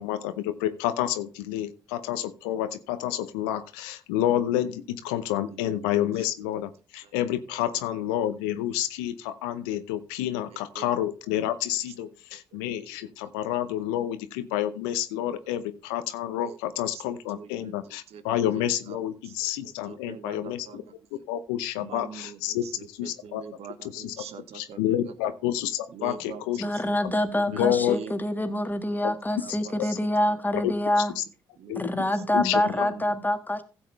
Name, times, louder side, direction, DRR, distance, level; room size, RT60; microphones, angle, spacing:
voice 1, 0.0-20.8 21.3-22.6 23.0-23.4 23.8-24.1 24.5-26.6 27.0-27.1 27.6-28.0 29.0-29.1 30.6-30.7 31.2-31.3 31.7-31.8 32.3-32.9, left 12 dB, 80° left, 0.7 m, -29 dB
voice 2, 5.5-5.9 6.1-6.3 7.0-7.1 7.5-7.9 8.2-8.3 10.5-10.9 12.0-12.1 12.3-12.4 12.9-13.0 16.4-16.6 16.9-18.2 18.5-19.0 19.2-20.9 21.8-25.4 25.9-28.3 29.4-30.4 30.9-31.0 31.6-33.1, right 7 dB, 65° right, 1.2 m, -44 dB
voice 3, 26.6-31.1 31.8-33.6, left 1 dB, 15° left, 1.7 m, -26 dB
15.5 x 7.5 x 3.3 m
hypercardioid pair, 45°, 12 cm